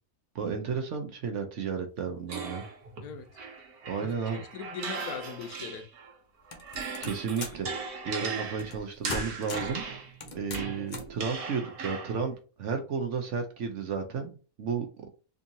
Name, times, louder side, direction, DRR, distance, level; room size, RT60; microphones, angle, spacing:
voice 1, 0.3-2.6 3.9-4.4 7.0-7.7 8.0-9.8 10.3-14.9, right 6 dB, 60° right, 0.9 m, -33 dB
sound 1, 2.3-6.1 6.5-12.3, right 5 dB, 85° right, 1.4 m, -38 dB
voice 2, 4.0-5.9, left 6 dB, 85° left, 1.3 m, -40 dB
sound 2, 6.5-7.7 8.6-8.8 9.1-9.8 10.2-11.2, left 3 dB, 50° left, 0.6 m, -38 dB
3.6 x 2.7 x 2.7 m
omnidirectional pair, 1.6 m